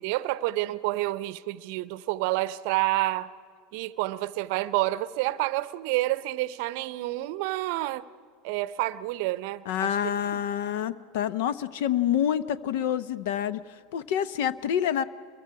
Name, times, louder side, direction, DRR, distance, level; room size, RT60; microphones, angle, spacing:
voice 1, 0.0-3.3 3.7-8.0 8.4-10.0 10.3-10.4, right 17 dB, 65° right, 0.6 m, -29 dB
voice 2, 9.7-13.6 13.9-15.0, left 10 dB, 70° left, 0.8 m, -27 dB
28.5 x 22.5 x 4.8 m
hypercardioid pair, 90°, 0 cm